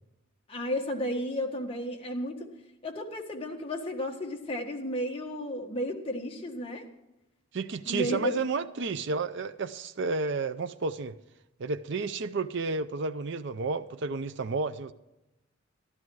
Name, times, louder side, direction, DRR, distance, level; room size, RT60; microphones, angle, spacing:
voice 1, 0.5-2.5 2.8-6.9 7.8-8.3, equal, 25° left, 1 dB, 1.6 m, -33 dB
voice 2, 7.5-11.2 11.6-14.9, right 4 dB, 60° right, 11 dB, 0.5 m, -31 dB
13.0 x 12.0 x 4.7 m, 0.95 s
head